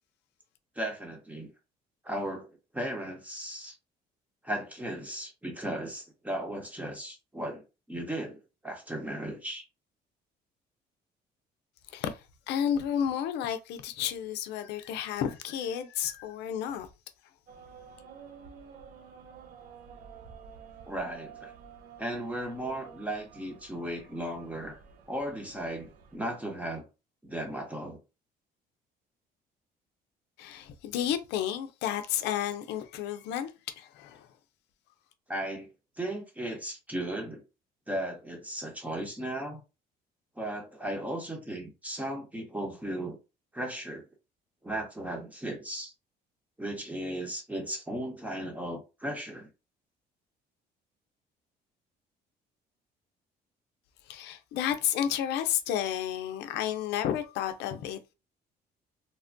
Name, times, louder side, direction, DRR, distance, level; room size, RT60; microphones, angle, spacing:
voice 1, 0.8-1.5 2.0-3.8 4.4-9.6 20.9-21.5 22.0-24.8 25.1-26.9 27.2-28.0 35.3-35.7 36.0-37.4 37.9-39.6 40.4-43.2 43.5-44.1 44.6-45.9 46.6-49.5, right 1 dB, 10° right, 0.9 m, -36 dB
voice 2, 11.9-16.9 30.4-34.3 54.0-58.1, left 10 dB, 85° left, 0.5 m, -32 dB
sound 1, 17.5-26.2, right 7 dB, 55° right, 0.6 m, -51 dB
3.3 x 2.1 x 2.6 m
cardioid pair, 110°, 17 cm